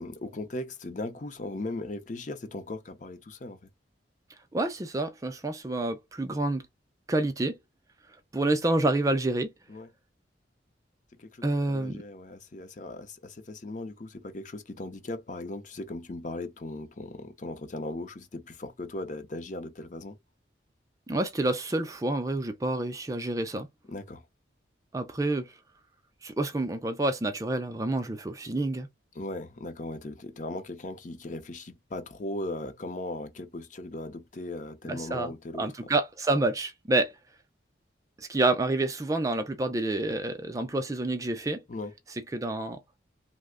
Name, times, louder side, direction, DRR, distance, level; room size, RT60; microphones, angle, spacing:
voice 1, 0.0-3.6 9.7-9.9 11.2-20.2 23.9-24.2 29.2-35.7 41.7-41.9, left 2 dB, 40° left, 0.6 m, -38 dB
voice 2, 4.5-6.7 7.1-7.6 8.3-9.5 11.4-12.0 21.1-23.7 24.9-25.5 26.2-28.9 34.8-37.1 38.2-41.6 42.3-42.8, right 2 dB, 20° right, 0.4 m, -28 dB
3.2 x 2.0 x 3.5 m
head